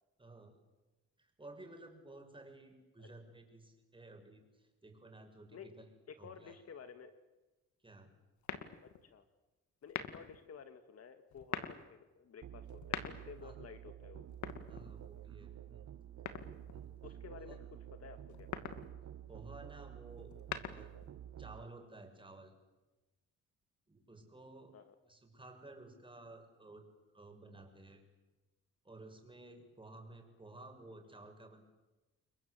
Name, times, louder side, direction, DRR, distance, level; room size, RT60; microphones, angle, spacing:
voice 1, 0.2-0.5 1.2-5.9 6.2-6.6 7.8-8.1 13.4-13.5 14.7-15.8 16.6-16.9 17.5-17.6 19.3-20.3 20.7-20.9 21.4-22.5 23.9-24.8 25.0-26.8 27.1-28.0 28.8-31.6, right 2 dB, 15° right, 4 dB, 6.4 m, -54 dB
voice 2, 6.1-7.1 8.8-9.2 9.8-14.3 17.0-17.6 18.0-18.5 24.7-25.0, left 6 dB, 55° left, 9 dB, 2.0 m, -53 dB
sound 1, 8.4-9.1 9.8-10.4 11.3-11.8 12.7-13.5 14.3-15.2 16.3-16.9 18.3-18.9 20.2-21.1, left 9 dB, 70° left, 2.1 m, -43 dB
Musical instrument, 12.4-21.6, right 11 dB, 60° right, 1.6 m, -50 dB
29.5 x 22.0 x 8.1 m, 1.1 s
cardioid pair, 90°, 30 cm